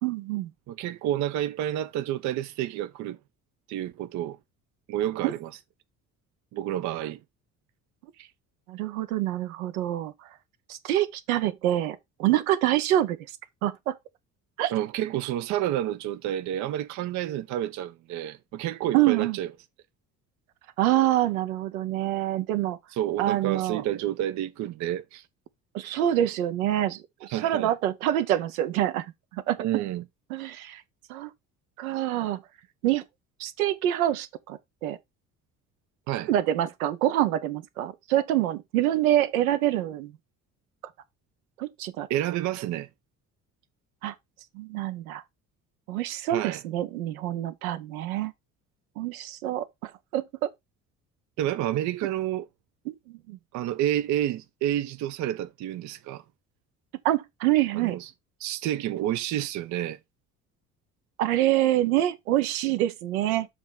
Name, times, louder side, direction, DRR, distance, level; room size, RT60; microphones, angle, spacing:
voice 1, 0.0-0.5 5.2-5.3 8.7-10.1 10.7-13.2 13.6-14.0 14.6-14.7 18.9-19.4 20.8-22.8 23.2-23.8 25.7-29.1 29.3-29.6 30.3-30.8 31.1-31.3 31.8-32.4 32.8-33.0 33.4-35.0 36.3-40.1 41.6-42.1 44.0-44.1 44.5-45.2 45.9-48.3 49.0-50.5 52.9-53.4 57.0-58.0 61.2-63.5, right 13 dB, 65° right, 0.9 m, -26 dB
voice 2, 0.7-3.2 3.7-4.4 4.9-5.5 6.5-7.2 8.2-8.3 14.7-19.5 22.9-25.2 27.3-27.7 29.6-30.0 36.1-36.3 42.1-42.9 46.3-46.6 51.4-52.5 53.5-56.2 57.7-58.1 58.4-60.0, right 12 dB, 40° right, 0.6 m, -29 dB
7.3 x 3.1 x 5.3 m
figure-of-eight pair, 55°, 46 cm